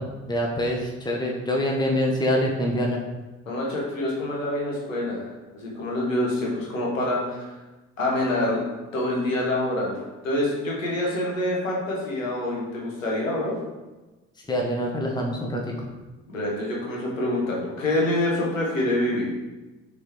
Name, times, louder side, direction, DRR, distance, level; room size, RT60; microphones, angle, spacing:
voice 1, 0.0-3.0 14.5-15.9, equal, 10° left, -1 dB, 1.3 m, -25 dB
voice 2, 3.4-7.5 8.0-8.6 8.9-9.9 10.2-13.5 16.3-19.3, left 1 dB, 85° left, -3 dB, 1.5 m, -26 dB
6.3 x 3.9 x 4.6 m, 1.1 s
figure-of-eight pair, 50°, 38 cm